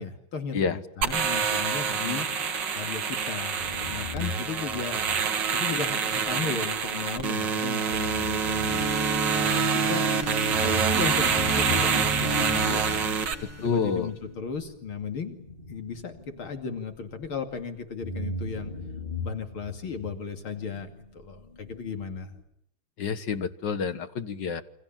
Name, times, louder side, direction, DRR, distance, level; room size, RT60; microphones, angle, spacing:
voice 1, 0.0-2.3 2.7-3.6 3.9-5.0 5.5-8.9 9.3-10.1 10.5-13.2 13.6-15.4 15.7-18.7 19.2-22.3, left 5 dB, 85° left, 6 dB, 3.3 m, -35 dB
sound 1, 1.0-13.3, right 6 dB, 60° right, 2.3 m, -26 dB
sound 2, 3.6-10.1 10.5-17.6 18.0-22.4, left 1 dB, 25° left, 4.5 m, -40 dB
sound 3, 7.9-14.1, left 1 dB, 5° right, 2.7 m, -34 dB
voice 2, 13.4-14.1 23.0-24.6, left 5 dB, 60° left, 11 dB, 2.1 m, -28 dB
29.0 x 25.0 x 7.4 m, 0.74 s
omnidirectional pair, 2.3 m